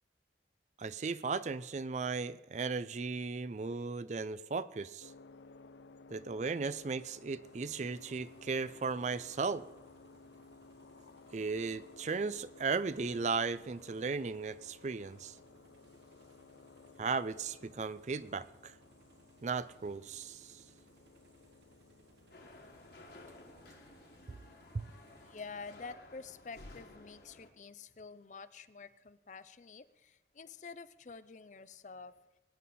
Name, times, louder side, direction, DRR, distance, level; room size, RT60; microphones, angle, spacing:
voice 1, 0.8-5.1 6.1-9.6 11.3-15.4 17.0-18.7 19.4-20.6 24.7-24.8, right 4 dB, 40° right, 16 dB, 0.4 m, -36 dB
sound 1, 5.0-23.1, left 3 dB, 90° left, 0.5 m, -58 dB
sound 2, 7.4-25.8, right 1 dB, 80° right, 2.5 m, -65 dB
sound 3, 22.3-27.5, left 2 dB, 60° left, 1.8 m, -55 dB
voice 2, 24.9-32.1, left 4 dB, 45° left, 14 dB, 0.5 m, -49 dB
21.5 x 9.3 x 4.2 m, 1.1 s
head